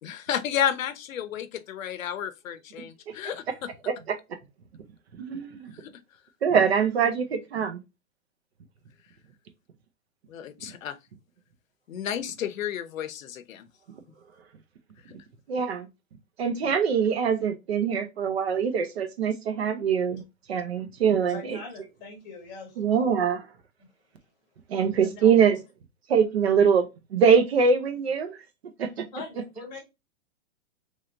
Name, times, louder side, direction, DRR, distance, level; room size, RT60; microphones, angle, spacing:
voice 1, 0.0-3.4 5.7-5.9 10.3-11.0 11.9-13.7 15.1-15.2, left 9 dB, 80° left, 0.7 m, -31 dB
voice 2, 5.2-5.7 6.4-7.8 15.5-15.9 16.4-20.2 20.5-21.6 22.8-23.5 24.7-25.6 26.1-28.4 28.8-29.0, right 6 dB, 50° right, 0.7 m, -23 dB
voice 3, 21.3-22.8 23.8-23.9 25.0-25.3 29.1-29.8, left 3 dB, 10° left, 1.0 m, -42 dB
3.2 x 2.8 x 3.7 m
hypercardioid pair, 180°, 39 cm